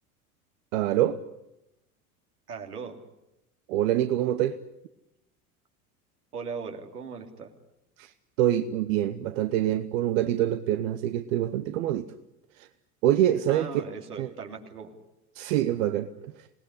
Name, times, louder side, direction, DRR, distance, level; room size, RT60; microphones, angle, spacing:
voice 1, 0.7-1.2 3.7-4.6 8.0-8.1 8.4-12.1 12.6-12.7 13.0-13.8 14.2-14.3 15.4-16.1, right 12 dB, 60° right, 1.2 m, -25 dB
voice 2, 2.5-3.0 6.3-7.5 13.5-14.9, right 5 dB, 80° right, 3.2 m, -38 dB
26.5 x 19.0 x 9.9 m
figure-of-eight pair, 75°, 45 cm